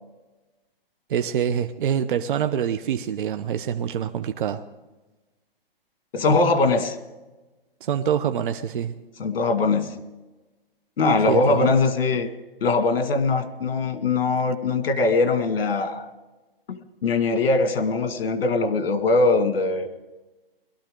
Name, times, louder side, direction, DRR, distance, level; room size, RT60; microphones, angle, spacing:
voice 1, 1.1-4.6 7.8-8.9 11.3-11.7, right 9 dB, 60° right, 8 dB, 0.9 m, -25 dB
voice 2, 6.1-7.0 9.2-10.0 11.0-12.3 12.6-16.1 16.7-19.9, left 3 dB, 70° left, 7 dB, 2.0 m, -21 dB
22.0 x 13.0 x 3.8 m, 1.1 s
hypercardioid pair, 150°, 29 cm